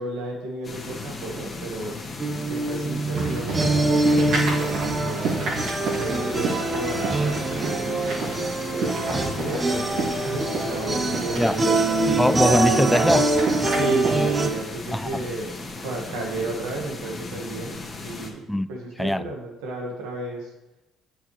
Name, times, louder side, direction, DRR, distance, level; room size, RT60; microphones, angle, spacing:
voice 1, 0.0-2.0 2.5-5.4 6.0-8.4 8.7-12.0 13.7-15.5 15.8-18.4 18.7-20.5, right 2 dB, 90° right, 1.7 m, -33 dB
sound 1, 0.6-18.3, left 3 dB, 35° left, 1.9 m, -37 dB
sound 2, 2.2-14.5, right 2 dB, 25° right, 1.0 m, -24 dB
sound 3, 3.1-14.6, right 3 dB, 70° right, 2.6 m, -31 dB
voice 2, 12.2-13.3 14.9-15.3 18.5-18.7 19.0-19.3, left 1 dB, 5° left, 0.3 m, -22 dB
8.5 x 6.2 x 3.3 m
supercardioid pair, 75°, 0 cm